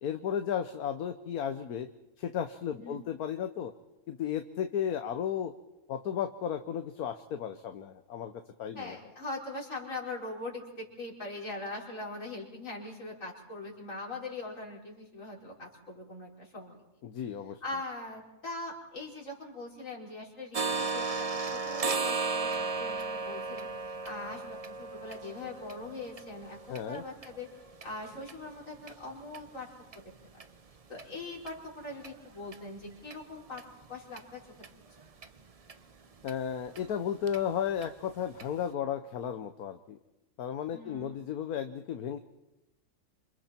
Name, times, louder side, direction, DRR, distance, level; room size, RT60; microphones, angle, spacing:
voice 1, 0.0-1.9 2.2-3.7 4.1-5.5 5.9-8.3 8.6-9.0 17.0-17.6 26.7-27.0 36.2-40.0 40.4-42.2, left 9 dB, 70° left, 8 dB, 1.4 m, -34 dB
voice 2, 8.8-16.8 17.6-27.5 27.8-29.7 30.0-30.1 30.9-33.6 33.9-34.4 40.7-41.2, left 2 dB, 55° left, -3 dB, 5.5 m, -41 dB
sound 1, 20.5-28.3 28.8-28.9 29.3-29.5 29.9-30.0 30.4-30.5 31.0-31.1 31.5-31.6 32.0-32.1 32.5-32.6 33.1-33.2 33.6-33.7 34.2-34.3 34.6-34.7 35.2-35.3 35.7-35.8 36.3-36.4 36.8-36.9 37.3-37.4 37.8-37.9 38.4-38.5, right 4 dB, 35° right, 0.6 m, -35 dB
27.5 x 27.0 x 4.4 m, 0.98 s
omnidirectional pair, 1.7 m